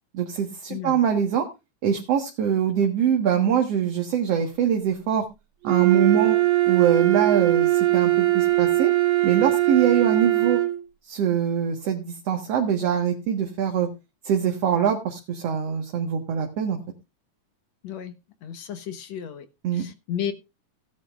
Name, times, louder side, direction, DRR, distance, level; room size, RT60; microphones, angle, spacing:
voice 1, 0.1-1.5 1.8-5.3 5.6-6.4 6.7-8.9 9.2-10.6 11.0-13.9 14.2-16.8 19.6-19.8, right 8 dB, 55° right, 3 dB, 2.3 m, -23 dB
voice 2, 0.7-1.0 17.8-18.1 18.4-19.5 19.7-20.3, left 9 dB, 65° left, 9 dB, 2.2 m, -33 dB
Wind instrument woodwind instrument, 5.7-10.8, right 16 dB, 70° right, 3.8 m, -21 dB
17.0 x 11.0 x 2.4 m, 0.25 s
omnidirectional pair, 3.7 m